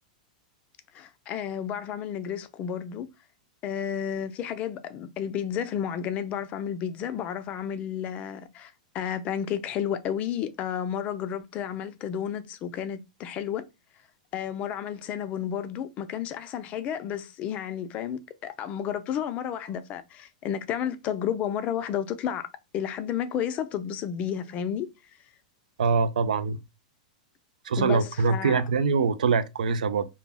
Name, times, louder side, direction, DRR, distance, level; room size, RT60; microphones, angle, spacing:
voice 1, 0.9-3.1 3.6-13.6 14.3-22.5 22.7-24.9 27.8-28.6, left 9 dB, 35° left, 0.3 m, -32 dB
voice 2, 25.8-26.6 27.7-30.0, right 5 dB, 90° right, 0.3 m, -24 dB
2.2 x 2.0 x 3.3 m
hypercardioid pair, 130°, 4 cm